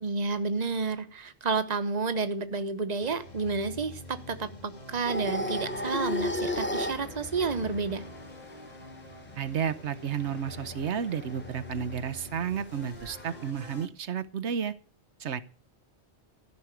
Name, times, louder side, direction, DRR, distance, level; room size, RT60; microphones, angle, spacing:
voice 1, 0.0-8.0, right 4 dB, 40° right, 11 dB, 1.2 m, -30 dB
sound 1, 3.0-13.9, left 2 dB, 40° left, 2.0 m, -46 dB
sound 2, 5.1-13.5, left 1 dB, 10° left, 0.7 m, -37 dB
voice 2, 9.4-14.7 15.2-15.4, right 7 dB, 85° right, 13 dB, 1.1 m, -32 dB
14.0 x 6.3 x 9.1 m, 0.40 s
omnidirectional pair, 1.1 m